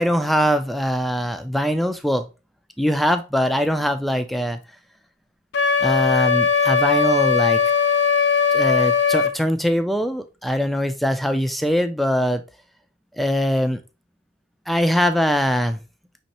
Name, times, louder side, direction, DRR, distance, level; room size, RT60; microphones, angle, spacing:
voice 1, 0.0-2.3 2.8-4.6 5.8-7.6 8.5-12.4 13.2-13.8 14.7-15.8, equal, ahead, 8 dB, 0.4 m, -22 dB
Wind instrument woodwind instrument, 5.5-9.3, left 6 dB, 70° left, 0.5 m, -19 dB
5.3 x 3.1 x 2.8 m, 0.30 s
head